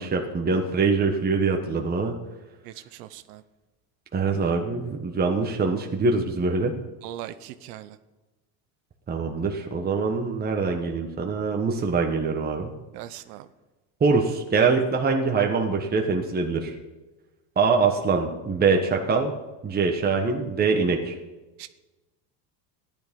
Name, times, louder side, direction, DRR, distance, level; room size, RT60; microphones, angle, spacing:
voice 1, 0.0-2.1 4.1-6.7 9.1-12.7 14.0-16.7 17.6-19.3 19.6-21.1, right 4 dB, 20° right, 2 dB, 1.3 m, -24 dB
voice 2, 2.6-3.4 7.0-8.0 12.9-13.5 21.6-21.7, right 13 dB, 85° right, 12 dB, 0.9 m, -40 dB
14.0 x 10.5 x 5.3 m, 1.1 s
supercardioid pair, 120°, 46 cm